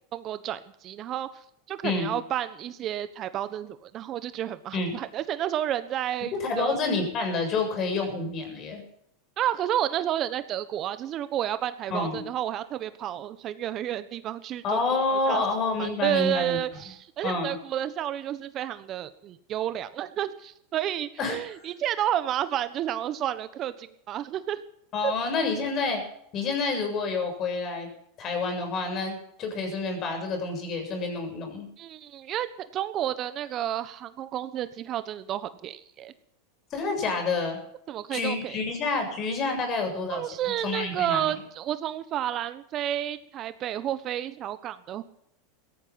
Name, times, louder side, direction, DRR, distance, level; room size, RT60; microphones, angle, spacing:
voice 1, 0.1-1.3 1.7-6.8 9.4-15.4 15.8-24.6 25.0-25.1 31.8-32.5 32.7-36.1 37.9-38.6 40.1-45.0, right 11 dB, 40° right, 13 dB, 1.1 m, -31 dB
voice 2, 1.8-2.2 4.7-5.0 6.3-8.8 11.9-12.2 14.6-16.6 17.2-17.6 21.2-21.4 24.9-26.0 26.3-27.9 28.2-31.7 36.7-37.6 38.1-40.3 40.6-41.4, left 3 dB, 40° left, 5 dB, 7.3 m, -28 dB
17.0 x 13.5 x 5.9 m, 0.73 s
hypercardioid pair, 110°, 0 cm